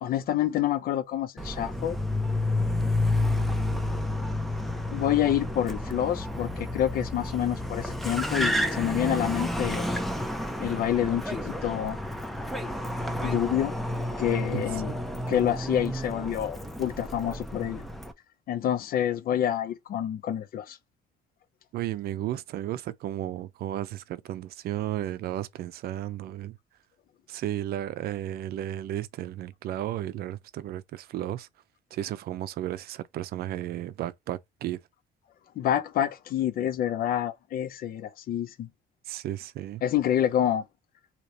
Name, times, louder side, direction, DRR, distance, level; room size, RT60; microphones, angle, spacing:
voice 1, 0.0-2.0 4.9-9.9 10.6-12.0 13.2-13.8 14.2-14.9 15.3-17.8 18.5-20.8 35.6-38.7 39.8-40.6, left 10 dB, 60° left, 0.6 m, -27 dB
Car, 1.4-18.1, left 1 dB, ahead, 0.7 m, -30 dB
voice 2, 21.7-26.6 27.3-31.5 31.9-34.8 39.1-39.8, right 12 dB, 65° right, 0.5 m, -33 dB
3.2 x 2.9 x 4.0 m
cardioid pair, 110°, 17 cm